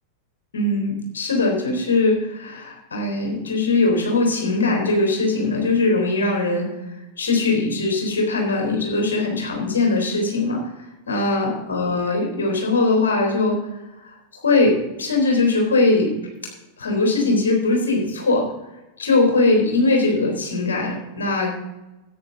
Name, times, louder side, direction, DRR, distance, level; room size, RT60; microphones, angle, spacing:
voice 1, 0.5-6.7 7.2-10.6 11.1-13.6 14.0-16.1 16.8-18.5 19.0-21.5, left 3 dB, 70° left, 1 dB, 3.7 m, -20 dB
13.5 x 9.4 x 3.9 m, 1.0 s
figure-of-eight pair, 90°, 0 cm